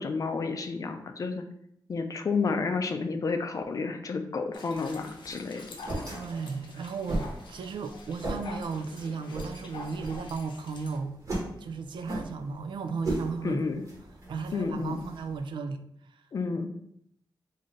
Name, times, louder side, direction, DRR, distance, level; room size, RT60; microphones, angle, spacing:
voice 1, 0.0-1.4 1.9-5.8 13.4-13.8 14.5-15.0 16.3-16.7, left 4 dB, 45° left, 6 dB, 0.4 m, -31 dB
sound 1, 4.5-11.0, left 3 dB, 85° left, 0.7 m, -46 dB
sound 2, 4.7-15.4, right 1 dB, 40° right, 1.1 m, -38 dB
voice 2, 6.1-11.2 11.6-13.6 14.3-15.8 16.1-16.2, right 5 dB, 80° right, 8 dB, 0.4 m, -35 dB
3.7 x 2.7 x 3.1 m, 0.71 s
wide cardioid pair, 130°, 8 cm